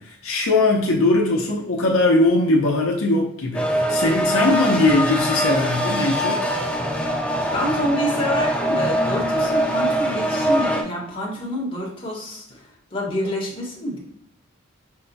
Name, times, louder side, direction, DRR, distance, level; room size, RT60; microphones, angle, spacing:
voice 1, 0.0-6.4, left 2 dB, 70° left, 0 dB, 0.7 m, -20 dB
sound 1, 3.5-10.8, equal, 5° left, 0.5 m, -23 dB
voice 2, 7.5-14.0, equal, 25° left, -2 dB, 1.1 m, -27 dB
5.5 x 2.2 x 4.0 m, 0.72 s
head